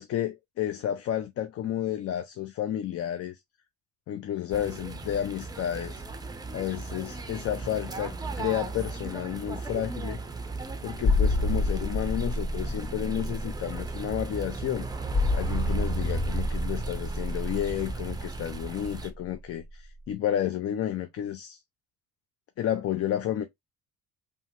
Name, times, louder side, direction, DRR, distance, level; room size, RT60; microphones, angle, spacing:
voice 1, 0.0-3.4 4.1-6.0 6.5-10.2 10.8-14.9 15.3-21.6 22.6-23.4, left 11 dB, 40° left, 0.4 m, -31 dB
sound 1, 4.5-19.1, right 4 dB, 10° right, 0.5 m, -36 dB
sound 2, 11.0-19.4 19.7-19.8, left 2 dB, 20° left, 1.9 m, -29 dB
3.4 x 2.1 x 2.8 m
supercardioid pair, 80°, 36 cm